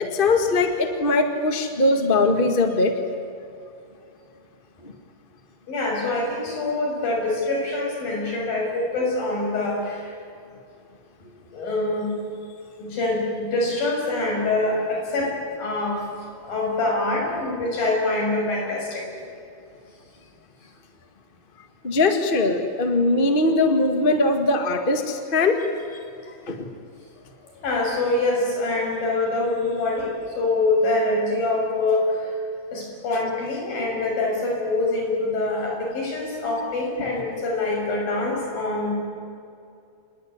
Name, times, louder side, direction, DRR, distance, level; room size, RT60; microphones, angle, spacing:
voice 1, 0.0-3.0 21.8-25.7 25.9-26.0 26.5-26.7, left 2 dB, 45° left, 6 dB, 0.6 m, -21 dB
voice 2, 5.7-10.2 11.5-12.2 12.8-16.0 16.4-19.2 27.6-32.3 32.7-38.9, left 2 dB, 65° left, -1 dB, 8.0 m, -25 dB
27.5 x 20.5 x 9.7 m, 2.5 s
omnidirectional pair, 4.5 m